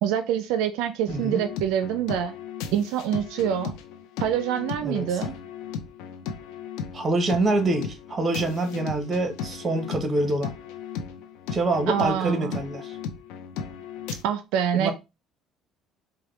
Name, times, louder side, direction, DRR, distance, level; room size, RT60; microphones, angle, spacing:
voice 1, 0.0-2.3 2.7-3.8 4.2-5.3 11.9-12.6 14.2-14.9, right 9 dB, 85° right, 0.4 m, -26 dB
sound 1, 1.1-14.2, left 7 dB, 85° left, 0.5 m, -36 dB
voice 2, 1.1-1.4 4.8-5.2 6.9-10.5 11.5-13.0 14.7-14.9, right 2 dB, 30° right, 1.0 m, -26 dB
4.6 x 2.2 x 3.2 m
supercardioid pair, 90°, 0 cm